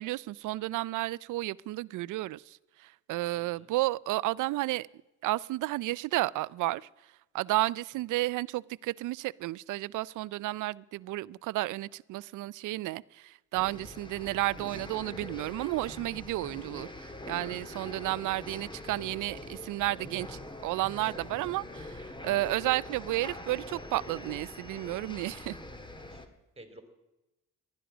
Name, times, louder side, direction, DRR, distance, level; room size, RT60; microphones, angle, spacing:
voice 1, 0.0-2.6 2.8-4.9 5.2-6.9 7.3-25.5, right 18 dB, 80° right, 22 dB, 0.5 m, -32 dB
voice 2, 3.3-3.7 7.9-8.0 26.0-26.3 26.5-26.8, right 1 dB, 20° right, 7 dB, 3.4 m, -54 dB
sound 1, 13.5-26.3, left 2 dB, 15° left, 1.7 m, -44 dB
19.0 x 12.5 x 6.1 m, 0.99 s
cardioid pair, 90°, 30 cm